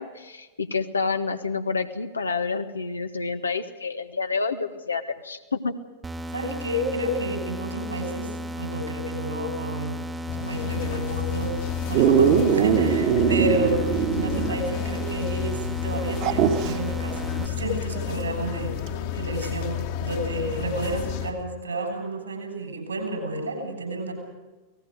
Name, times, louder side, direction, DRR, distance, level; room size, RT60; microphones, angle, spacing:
voice 1, 0.0-5.7, left 4 dB, 75° left, 7 dB, 1.5 m, -28 dB
sound 1, 6.0-17.5, equal, 15° right, 1.4 m, -34 dB
voice 2, 6.3-10.1 10.3-11.5 11.9-18.8 19.1-24.1, right 1 dB, 75° right, 3 dB, 7.2 m, -30 dB
sound 2, 10.3-21.3, left 9 dB, 50° left, 2.1 m, -31 dB
Dog, 11.9-14.7 15.0-15.1 16.2-16.8 18.9-19.0, right 7 dB, 45° right, 2.1 m, -21 dB
29.0 x 19.0 x 5.2 m, 1.2 s
figure-of-eight pair, 90°, 0 cm